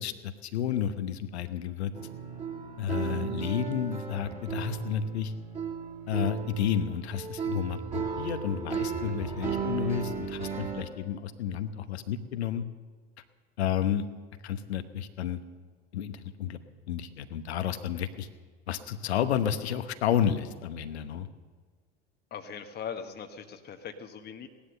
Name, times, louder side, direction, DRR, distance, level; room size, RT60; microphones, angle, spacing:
voice 1, 0.0-1.9 2.8-5.3 6.1-12.6 13.6-14.1 14.4-15.4 15.9-16.6 16.9-18.3 18.7-21.3, left 9 dB, 70° left, 10 dB, 1.1 m, -31 dB
sound 1, 1.9-10.8, right 6 dB, 25° right, 3.0 m, -35 dB
voice 2, 22.3-24.5, left 7 dB, 30° left, 5 dB, 1.2 m, -40 dB
17.5 x 11.5 x 6.6 m, 1.5 s
figure-of-eight pair, 80°, 33 cm